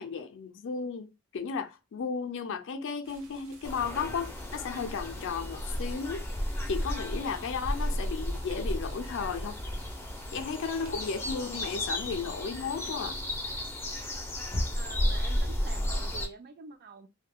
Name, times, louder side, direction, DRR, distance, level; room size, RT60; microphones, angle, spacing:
voice 1, 0.0-9.6 10.3-13.2, left 5 dB, 60° left, 0.4 m, -34 dB
sound 1, 3.0-11.3, right 1 dB, 65° right, 0.8 m, -49 dB
sound 2, 3.6-16.3, left 1 dB, 10° left, 0.5 m, -33 dB
voice 2, 14.7-17.1, right 5 dB, 45° right, 0.4 m, -47 dB
3.6 x 2.2 x 2.2 m
head